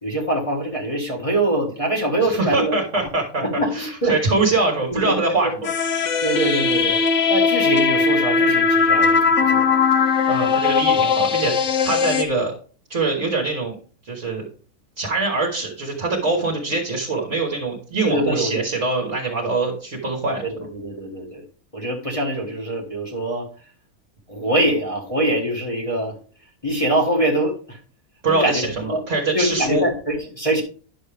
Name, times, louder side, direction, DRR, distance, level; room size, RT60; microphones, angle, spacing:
voice 1, 0.0-2.8 3.4-4.2 4.9-5.4 6.2-7.0 7.3-9.7 18.0-18.5 20.4-21.4 21.7-23.5 24.3-26.1 26.6-27.8 28.3-29.0 29.3-30.6, right 1 dB, 25° left, -3 dB, 1.5 m, -23 dB
voice 2, 2.2-5.5 10.3-12.6 12.9-13.7 14.0-14.4 15.0-20.4 28.2-29.8, right 3 dB, 55° right, -2 dB, 1.7 m, -23 dB
sound 1, 5.6-12.2, left 5 dB, 60° left, 1.2 m, -19 dB
10.5 x 6.3 x 3.4 m, 0.41 s
omnidirectional pair, 1.6 m